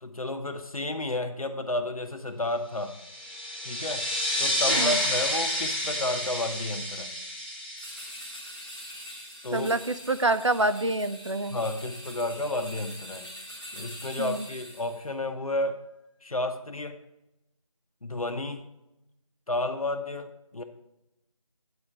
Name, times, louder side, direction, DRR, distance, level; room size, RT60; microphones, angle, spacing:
voice 1, 0.0-3.0 3.6-4.1 4.4-7.1 9.4-9.7 11.5-13.3 13.7-15.8 16.2-17.0 18.0-18.6 19.5-20.6, left 2 dB, 75° left, 6 dB, 0.8 m, -31 dB
sound 1, 2.9-9.1, left 1 dB, 15° left, 1.0 m, -30 dB
sound 2, 7.8-15.1, equal, 15° right, 3.1 m, -44 dB
voice 2, 9.5-11.6 14.2-14.5, right 2 dB, 55° right, 12 dB, 0.5 m, -27 dB
9.5 x 4.5 x 6.0 m, 0.91 s
figure-of-eight pair, 175°, 18 cm